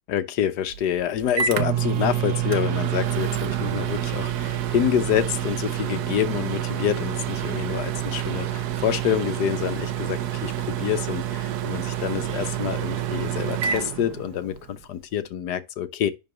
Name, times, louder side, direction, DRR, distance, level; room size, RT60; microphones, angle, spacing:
voice 1, 0.1-16.1, left 10 dB, 65° left, 1.1 m, -27 dB
Microwave oven, 0.7-14.7, right 10 dB, 65° right, 1.1 m, -28 dB
10.5 x 3.8 x 3.0 m
omnidirectional pair, 2.1 m